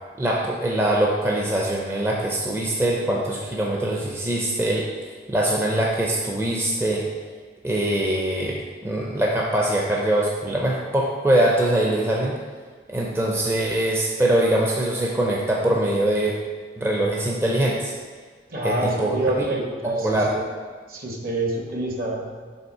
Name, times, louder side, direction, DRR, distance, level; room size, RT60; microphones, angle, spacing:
voice 1, 0.2-4.9 5.3-7.1 7.6-8.6 8.8-12.4 12.9-16.4 16.8-17.9 18.6-19.5 20.0-20.3, right 1 dB, 15° right, -2 dB, 0.5 m, -23 dB
voice 2, 18.5-20.4 20.9-22.5, right 1 dB, 55° right, 0 dB, 1.1 m, -27 dB
5.5 x 3.8 x 5.5 m, 1.5 s
head